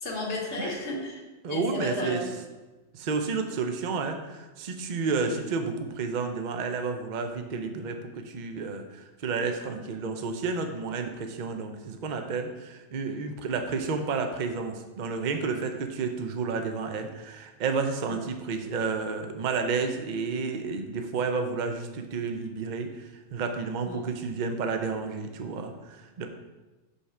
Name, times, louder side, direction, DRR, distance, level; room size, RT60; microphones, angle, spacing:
voice 1, 0.0-1.2 1.5-2.3 18.1-18.2 23.8-24.0, left 2 dB, 65° left, -3 dB, 1.7 m, -33 dB
voice 2, 1.4-2.2 2.9-26.3, right 4 dB, 45° right, 5 dB, 0.7 m, -31 dB
5.3 x 4.9 x 5.9 m, 1.1 s
omnidirectional pair, 1.3 m